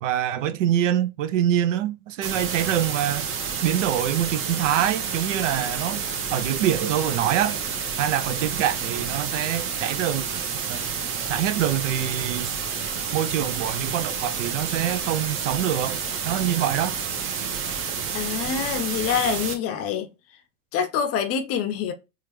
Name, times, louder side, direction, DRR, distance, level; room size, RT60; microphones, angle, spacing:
voice 1, 0.0-3.3 3.6-6.0 6.3-7.6 8.0-10.2 10.7-10.8 11.3-12.6 13.1-16.0 16.3-17.0, right 11 dB, 55° right, 0.5 m, -25 dB
sound 1, 2.2-19.6, right 6 dB, 30° right, 0.8 m, -29 dB
voice 2, 18.1-20.1 20.7-21.9, left 7 dB, 30° left, 0.6 m, -26 dB
4.4 x 2.4 x 3.0 m
hypercardioid pair, 90°, 45 cm